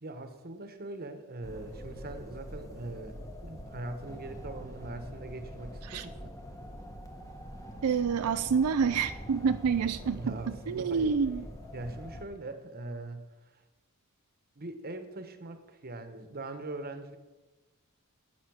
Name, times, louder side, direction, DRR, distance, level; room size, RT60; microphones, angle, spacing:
voice 1, 0.0-6.3 10.1-11.2 11.7-13.6 14.6-17.2, right 2 dB, 45° right, 8 dB, 1.3 m, -41 dB
sound 1, 1.4-12.2, equal, 15° left, 1.4 m, -44 dB
voice 2, 7.8-10.2 10.7-11.4, right 6 dB, 85° right, 8 dB, 0.5 m, -27 dB
12.0 x 8.5 x 6.4 m, 1.2 s
head